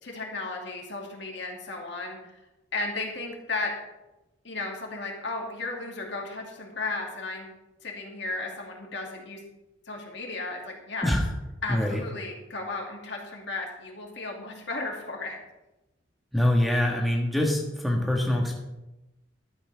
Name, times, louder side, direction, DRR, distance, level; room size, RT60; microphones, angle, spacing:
voice 1, 0.0-2.2 2.7-3.7 4.4-7.5 7.8-9.4 9.9-11.1 11.6-15.4, left 3 dB, 55° left, 0 dB, 2.5 m, -34 dB
voice 2, 11.7-12.0 16.3-18.6, left 1 dB, ahead, -1 dB, 1.5 m, -24 dB
14.0 x 12.5 x 3.5 m, 0.99 s
head